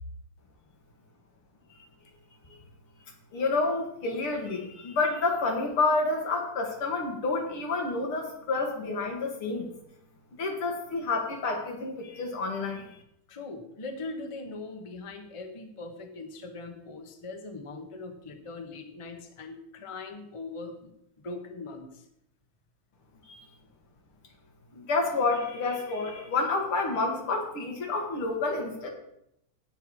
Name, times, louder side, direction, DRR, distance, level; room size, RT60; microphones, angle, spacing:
voice 1, 3.3-9.7 10.4-12.8 23.3-23.4 24.7-28.9, left 3 dB, 80° left, 2 dB, 2.8 m, -29 dB
voice 2, 13.3-22.0, left 3 dB, 20° left, 4 dB, 1.0 m, -41 dB
17.0 x 5.7 x 4.9 m, 0.78 s
omnidirectional pair, 2.3 m